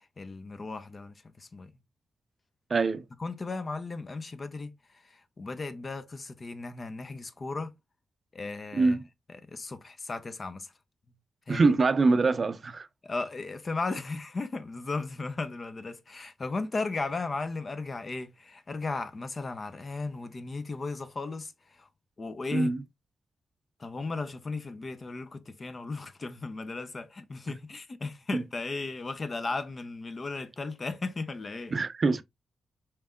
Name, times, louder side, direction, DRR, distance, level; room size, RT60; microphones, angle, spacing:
voice 1, 0.2-1.7 3.2-4.7 5.1-7.7 8.3-9.0 9.5-10.7 11.5-11.8 13.0-21.9 22.2-22.7 23.8-31.7, left 3 dB, 45° left, 0.7 m, -36 dB
voice 2, 2.7-3.1 8.7-9.0 11.5-12.9 22.5-22.8 28.3-28.4 31.7-32.2, right 3 dB, 50° right, 0.4 m, -24 dB
4.4 x 3.3 x 2.4 m
cardioid pair, 55°, 0 cm